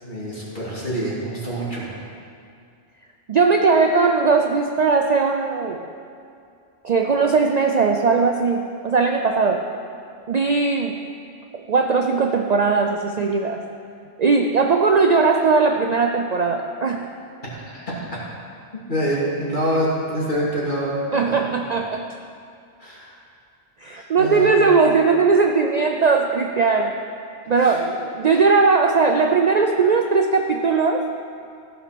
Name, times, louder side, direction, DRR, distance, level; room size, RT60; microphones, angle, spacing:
voice 1, 0.0-1.9 17.5-17.9 18.9-21.4 22.8-23.1 23.8-24.6 27.6-27.8, equal, 45° left, -7 dB, 2.9 m, -26 dB
voice 2, 3.3-5.9 6.8-9.7 10.3-11.0 11.5-13.6 14.2-17.1 21.1-22.0 23.8-26.9 27.5-31.0, right 4 dB, 50° right, 3 dB, 0.5 m, -19 dB
15.0 x 5.4 x 5.9 m, 2.4 s
omnidirectional pair, 1.1 m